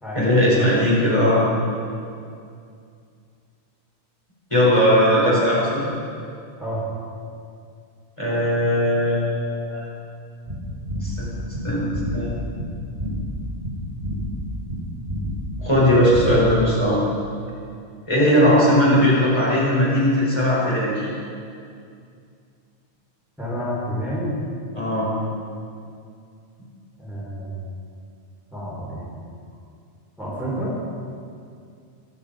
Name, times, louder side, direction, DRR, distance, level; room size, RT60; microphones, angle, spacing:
voice 1, 0.1-1.4 4.5-5.8 8.2-9.9 11.0-11.3 11.6-12.4 15.6-17.0 18.1-21.1 24.7-25.1, equal, 25° left, -8 dB, 4.9 m, -19 dB
sound 1, 10.5-16.8, equal, 55° right, 3.0 m, -30 dB
voice 2, 23.4-24.4 27.0-27.6 28.5-29.1 30.2-30.8, equal, ahead, -7 dB, 4.4 m, -29 dB
23.5 x 11.0 x 5.2 m, 2.4 s
omnidirectional pair, 1.2 m